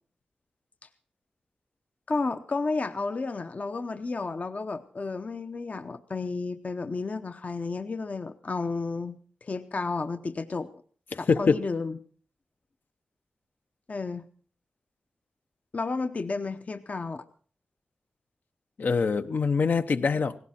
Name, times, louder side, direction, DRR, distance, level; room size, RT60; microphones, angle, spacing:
voice 1, 2.1-10.7 11.2-12.0 13.9-14.3 15.7-17.2, left 3 dB, 50° left, 8 dB, 0.8 m, -32 dB
voice 2, 11.1-11.6 18.8-20.4, left 5 dB, 70° left, 9 dB, 0.9 m, -24 dB
18.0 x 17.0 x 4.3 m, 0.43 s
wide cardioid pair, 85°, 3 cm